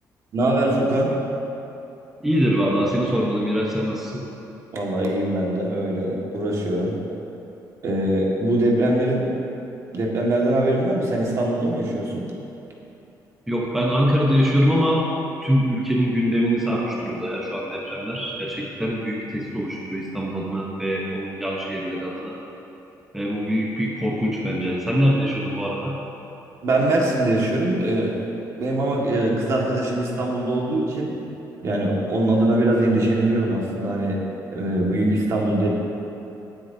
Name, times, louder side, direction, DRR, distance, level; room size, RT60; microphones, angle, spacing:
voice 1, 0.3-1.1 4.7-7.0 7.8-9.2 9.9-12.3 26.6-28.2 28.6-31.1 31.6-34.2 34.5-35.8, right 1 dB, 45° right, -2 dB, 1.9 m, -22 dB
voice 2, 2.2-4.3 13.5-15.1 15.4-22.4 23.1-26.0, equal, 5° right, -4 dB, 1.0 m, -23 dB
19.0 x 9.5 x 2.8 m, 3.0 s
cardioid pair, 165°, 7 cm